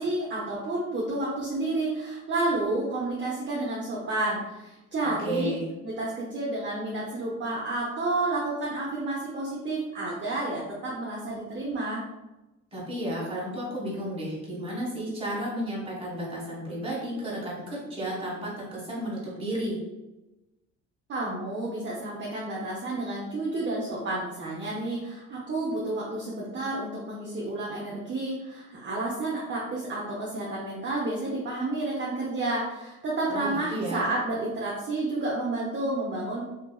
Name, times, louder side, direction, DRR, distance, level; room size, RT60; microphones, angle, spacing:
voice 1, 0.0-5.5 5.8-12.0 21.1-36.4, right 2 dB, 40° right, -4 dB, 0.6 m, -30 dB
voice 2, 5.2-5.7 12.7-19.8 33.3-34.1, right 1 dB, 20° right, -6 dB, 1.4 m, -32 dB
2.8 x 2.7 x 2.2 m, 1.0 s
cardioid pair, 90°, 30 cm